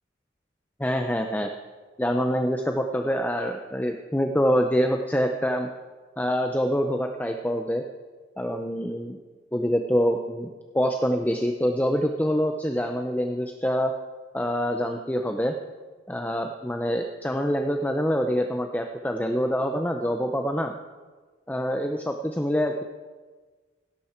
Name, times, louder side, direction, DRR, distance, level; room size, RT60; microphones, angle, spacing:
voice 1, 0.8-1.5 2.0-5.7 6.2-7.8 8.4-9.2 9.5-13.9 14.3-15.5 16.1-20.7 21.5-22.8, equal, 10° left, 4 dB, 0.6 m, -25 dB
17.0 x 12.5 x 4.5 m, 1.4 s
head